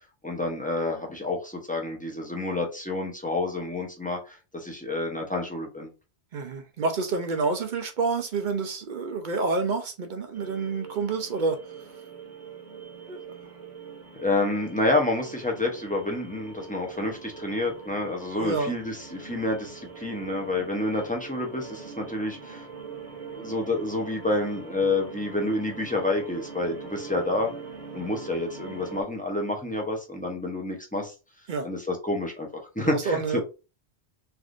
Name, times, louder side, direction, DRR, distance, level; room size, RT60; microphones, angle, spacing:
voice 1, 0.2-5.9 14.1-22.7 23.3-27.5 27.9-31.1 31.6-32.5 32.8-33.4, left 2 dB, 10° left, 0.6 m, -29 dB
voice 2, 6.3-11.6 13.1-13.2 18.4-18.7 31.5-31.7 32.8-33.4, right 4 dB, 55° right, 0.6 m, -28 dB
sound 1, 10.3-29.0, right 5 dB, 35° right, 0.9 m, -43 dB
3.3 x 2.6 x 2.4 m
omnidirectional pair, 1.1 m